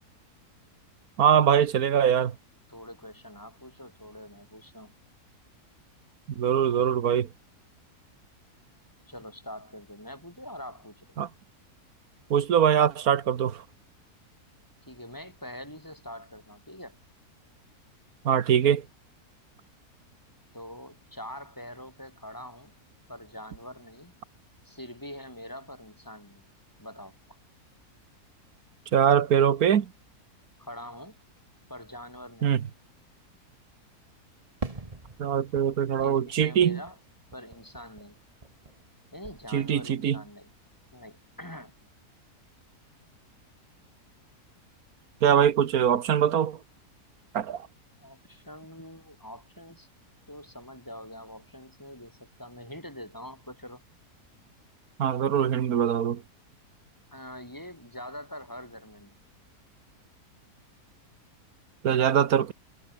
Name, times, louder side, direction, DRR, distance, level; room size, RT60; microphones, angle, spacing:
voice 1, 1.2-2.3 6.4-7.3 11.2-11.3 12.3-13.6 18.2-18.8 28.9-29.9 32.4-32.6 35.2-36.8 39.5-40.2 45.2-46.6 47.3-47.7 55.0-56.2 61.8-62.5, right 9 dB, 70° right, 1.6 m, -22 dB
voice 2, 2.7-4.9 9.1-11.1 14.9-17.0 20.5-22.7 23.1-24.1 24.6-26.4 26.8-27.2 30.6-31.2 31.7-32.6 36.0-37.0 37.3-38.2 39.1-40.5 40.9-41.7 48.0-49.9 50.3-53.8 57.1-59.2, left 1 dB, 10° left, 4.9 m, -44 dB
Fireworks, 34.6-39.0 39.2-40.0, right 3 dB, 25° right, 1.8 m, -43 dB
omnidirectional pair, 1.7 m